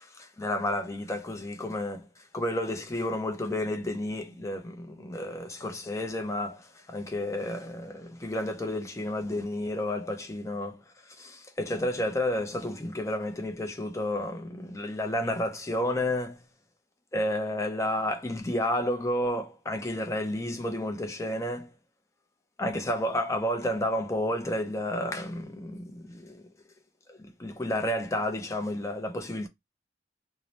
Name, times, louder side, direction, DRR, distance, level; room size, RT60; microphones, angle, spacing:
voice 1, 0.0-16.4 17.1-21.7 22.6-26.4 27.1-29.5, left 1 dB, 15° left, 0.5 m, -31 dB
2.7 x 2.0 x 3.1 m
head